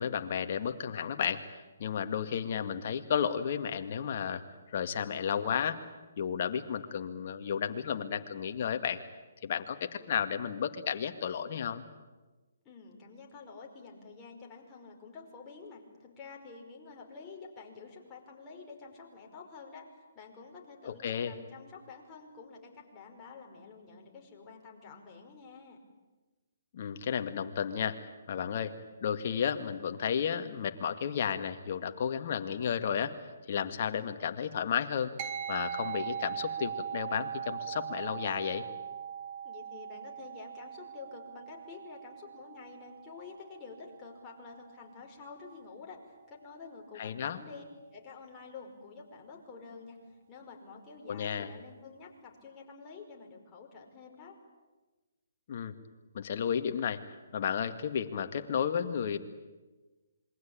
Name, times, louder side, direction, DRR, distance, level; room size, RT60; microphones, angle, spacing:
voice 1, 0.0-4.4 4.7-5.8 6.2-9.0 9.4-11.8 20.8-21.3 26.7-28.0 28.3-28.7 29.0-33.1 33.5-35.1 35.5-38.6 47.0-47.4 51.1-51.5 55.5-55.7 56.1-57.0 57.3-59.2, left 8 dB, 50° left, 7 dB, 2.1 m, -32 dB
voice 2, 12.7-19.8 20.1-25.8 39.4-54.4, left 4 dB, 20° left, -1 dB, 5.4 m, -49 dB
sound 1, 35.2-44.9, right 8 dB, 35° right, 2.2 m, -40 dB
27.0 x 23.0 x 8.9 m, 1.2 s
hypercardioid pair, 150°, 0 cm